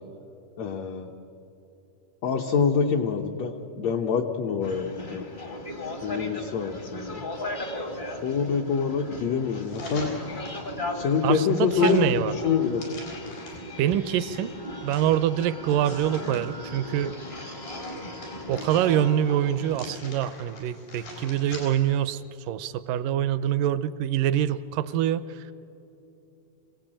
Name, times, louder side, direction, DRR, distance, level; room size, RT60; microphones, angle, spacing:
voice 1, 0.6-1.1 2.2-5.3 6.0-7.3 8.1-10.1 10.9-12.8, left 6 dB, 70° left, 2 dB, 1.7 m, -26 dB
sound 1, 4.6-20.0, left 1 dB, 35° left, 0.7 m, -36 dB
sound 2, 9.6-10.7 11.2-13.7 14.3-16.4 16.9-19.2 19.7-22.0 22.4-22.5, left 2 dB, 85° left, 6.7 m, -45 dB
voice 2, 11.2-12.4 13.8-14.6 14.8-17.1 18.5-25.5, right 11 dB, 80° right, 14 dB, 2.1 m, -25 dB
26.0 x 17.0 x 8.9 m, 3.0 s
omnidirectional pair, 4.2 m